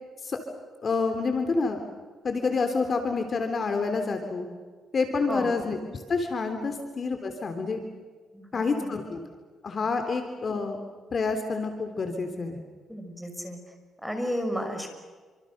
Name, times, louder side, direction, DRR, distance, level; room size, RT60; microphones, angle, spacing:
voice 1, 0.8-1.8 2.2-4.5 4.9-7.8 8.5-9.2 9.6-10.8 11.1-12.6, left 4 dB, 45° left, 6 dB, 3.3 m, -28 dB
voice 2, 8.3-8.9 12.9-13.6 14.0-14.9, equal, ahead, 5 dB, 6.2 m, -33 dB
29.0 x 26.0 x 6.7 m, 1.5 s
cardioid pair, 90°, 0 cm